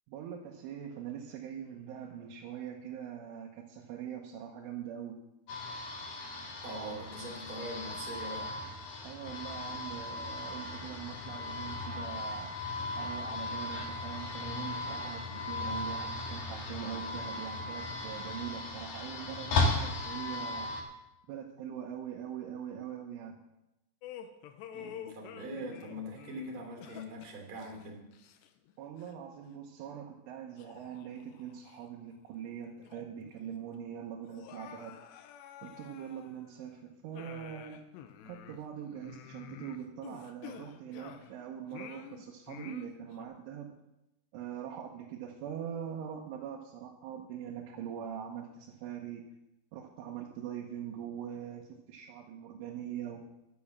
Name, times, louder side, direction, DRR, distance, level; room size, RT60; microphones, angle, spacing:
voice 1, 0.1-5.2 9.0-12.6 13.0-20.7 21.3-23.4 28.8-35.0 35.6-37.9 38.2-43.8 44.3-49.2 49.7-53.3, right 9 dB, 75° right, 0 dB, 3.4 m, -42 dB
sound 1, 5.5-20.8, left 2 dB, 60° left, 2.7 m, -36 dB
voice 2, 6.6-8.5 24.7-28.1, right 1 dB, 30° right, 0 dB, 2.9 m, -42 dB
sound 2, 24.0-28.7 29.0-29.2 29.9-30.0 30.6-31.9 32.3-32.4 32.8-33.4 33.6-33.7 34.2-36.7 37.1-41.4 41.7-43.3, left 10 dB, 80° left, 2.6 m, -49 dB
11.5 x 8.6 x 7.2 m, 0.92 s
omnidirectional pair, 5.9 m